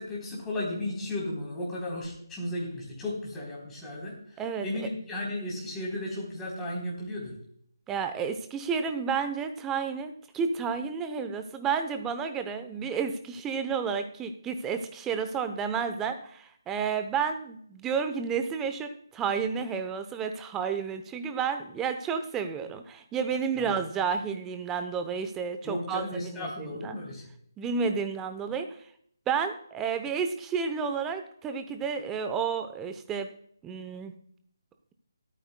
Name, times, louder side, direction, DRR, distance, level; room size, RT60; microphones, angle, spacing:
voice 1, 0.0-7.3 23.6-23.7 25.6-27.3, left 1 dB, 10° left, -4 dB, 3.6 m, -35 dB
voice 2, 4.4-4.9 7.9-27.0 27.6-28.7 29.3-33.3 33.6-34.1, right 6 dB, 10° right, 8 dB, 0.7 m, -31 dB
23.5 x 9.1 x 2.2 m, 0.65 s
figure-of-eight pair, 155°, 2 cm